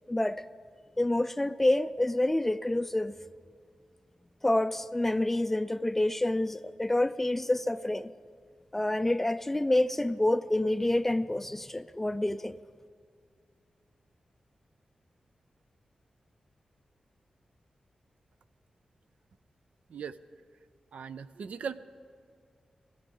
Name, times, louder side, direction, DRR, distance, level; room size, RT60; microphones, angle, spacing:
voice 1, 0.1-0.4 1.0-3.2 4.4-8.1 8.7-12.6, left 1 dB, 10° left, 0.3 m, -28 dB
voice 2, 20.9-21.8, right 6 dB, 85° right, 0.5 m, -38 dB
20.5 x 13.5 x 3.9 m
wide cardioid pair, 150°, 2 cm